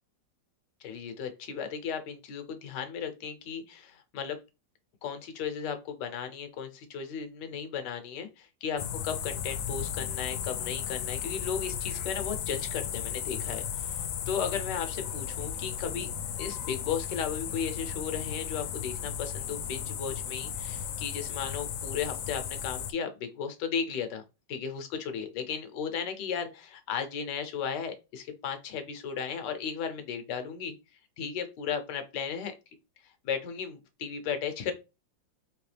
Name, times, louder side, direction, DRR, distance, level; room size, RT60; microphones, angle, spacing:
voice 1, 0.8-4.4 5.0-16.1 16.4-24.2 24.5-30.7 31.2-32.5 33.0-34.7, left 7 dB, 70° left, 7 dB, 1.4 m, -35 dB
sound 1, 8.8-22.9, left 9 dB, 90° left, 1.4 m, -35 dB
4.0 x 3.2 x 3.3 m, 0.28 s
omnidirectional pair, 2.0 m